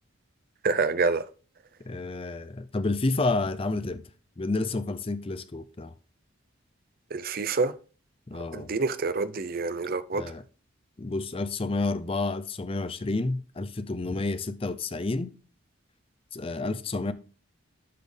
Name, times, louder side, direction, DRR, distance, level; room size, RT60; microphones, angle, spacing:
voice 1, 0.6-1.2 7.1-7.7 8.3-10.2, right 4 dB, 45° right, 0.5 m, -27 dB
voice 2, 1.9-4.0 4.4-5.9 8.3-8.7 10.1-10.4 11.0-15.3 16.3-17.1, left 2 dB, 25° left, 0.5 m, -30 dB
12.0 x 4.2 x 3.3 m
head